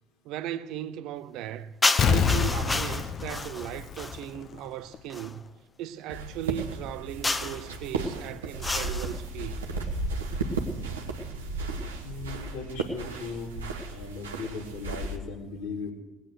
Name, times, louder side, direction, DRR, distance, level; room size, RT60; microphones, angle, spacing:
voice 1, 0.2-1.7 2.0-5.5 5.8-9.6, right 11 dB, 65° right, 0.6 m, -37 dB
sound 1, 1.8-4.3 5.1-5.4 7.2-7.7 8.6-9.2, left 2 dB, 20° left, 1.1 m, -30 dB
Explosion, 2.0-4.6 4.9-5.0, left 6 dB, 50° left, 1.0 m, -26 dB
sound 2, 6.1-15.2, right 3 dB, 90° right, 1.3 m, -34 dB
voice 2, 12.0-13.5 13.8-15.9, left 4 dB, 75° left, 2.9 m, -38 dB
18.5 x 9.6 x 6.6 m
hypercardioid pair, 60°, 0 cm